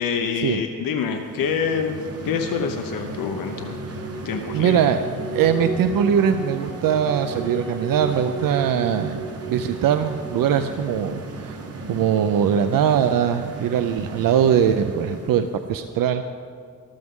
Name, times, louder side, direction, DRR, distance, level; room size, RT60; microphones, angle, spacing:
voice 1, 0.0-2.0 2.2-3.8 4.2-4.9, left 6 dB, 85° left, 4 dB, 0.8 m, -26 dB
sound 1, 1.1-15.6, right 2 dB, 45° right, 1.2 m, -36 dB
sound 2, 3.0-10.6, right 3 dB, 5° left, 2.9 m, -34 dB
voice 2, 4.5-5.0 5.3-9.2 9.5-11.6 11.9-16.2, right 8 dB, 85° right, 9 dB, 0.5 m, -21 dB
14.0 x 13.5 x 3.7 m, 2.3 s
wide cardioid pair, 150°, 33 cm